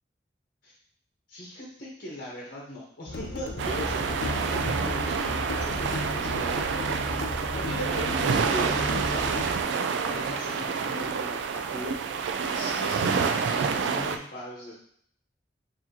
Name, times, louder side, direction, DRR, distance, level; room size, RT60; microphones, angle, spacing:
voice 1, 1.3-7.2 7.5-9.4 10.1-12.0 12.5-14.7, equal, 55° left, -5 dB, 1.1 m, -38 dB
sound 1, 3.1-9.6, left 1 dB, 85° left, 0.6 m, -34 dB
sound 2, 3.6-14.2, right 5 dB, 80° right, 0.3 m, -28 dB
4.6 x 2.8 x 2.8 m, 0.64 s
head